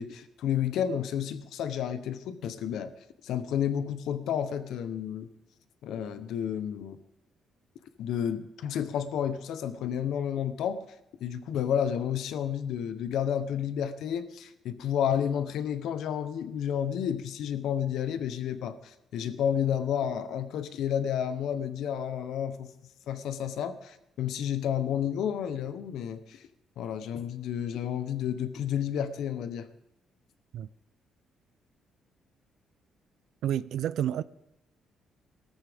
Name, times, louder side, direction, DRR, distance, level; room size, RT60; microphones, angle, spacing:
voice 1, 0.0-2.9 3.2-5.3 5.8-7.0 8.0-10.9 11.2-22.7 23.1-26.4 26.8-29.7, left 9 dB, 80° left, 0.9 m, -31 dB
voice 2, 33.4-34.2, right 11 dB, 75° right, 0.4 m, -29 dB
18.5 x 13.5 x 3.6 m
cardioid pair, 90°, 0 cm